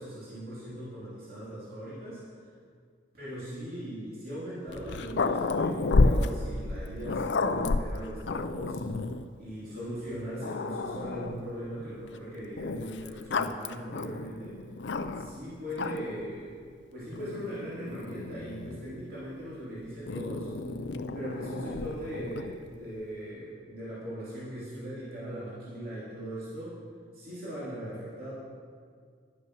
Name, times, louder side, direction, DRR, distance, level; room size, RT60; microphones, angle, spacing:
voice 1, 0.0-2.2 3.1-8.8 9.4-14.6 15.2-16.6 16.9-20.5 21.1-26.8 27.1-28.3, equal, 55° right, -9 dB, 3.2 m, -39 dB
Growling, 4.7-9.3 10.0-10.1 10.4-11.5 12.6-15.4 15.7-16.2 17.1-18.9 20.1-22.6, left 3 dB, 75° left, 0.5 m, -31 dB
11.0 x 8.5 x 6.3 m, 2.1 s
head